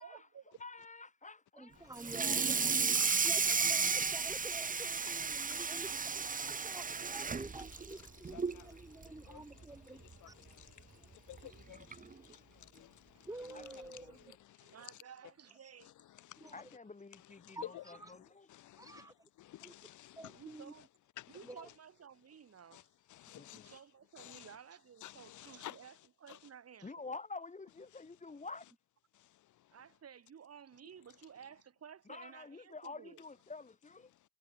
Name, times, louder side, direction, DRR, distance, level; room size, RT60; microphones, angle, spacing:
voice 1, 0.0-0.6 13.1-15.9 20.2-20.9 21.3-22.9 23.5-27.1 29.7-33.2, right 8 dB, 55° right, 7.5 m, -55 dB
voice 2, 0.6-2.0 6.4-6.7 13.5-13.7 16.5-18.5 23.3-23.7 26.8-28.7 32.1-34.1, left 3 dB, 25° left, 4.7 m, -49 dB
voice 3, 1.6-2.9 3.2-10.4 11.0-11.1 11.5-11.6 13.3-14.4 16.4-16.5 17.5-18.1 18.7-19.3 19.6-19.9 20.2-20.7 21.4-21.7, right 2 dB, 10° right, 3.0 m, -50 dB
Water tap faucet / Sink (filling or washing), 2.0-8.6 9.0-9.3 9.6-9.7 10.1-10.2 11.3-11.4 11.9-12.1, right 5 dB, 25° right, 1.2 m, -33 dB
voice 4, 2.8-3.4 5.0-5.8 6.6-6.7 8.2-9.6 9.9-13.3 13.8-14.7 16.1-16.5 17.4-17.8 18.5-19.1 19.4-20.4 21.2-21.4 22.7-22.8 23.1-23.8 24.2-24.5 25.0-25.8 26.3-26.4 29.1-29.4, left 14 dB, 75° left, 1.4 m, -53 dB
cardioid pair, 90°, 30 cm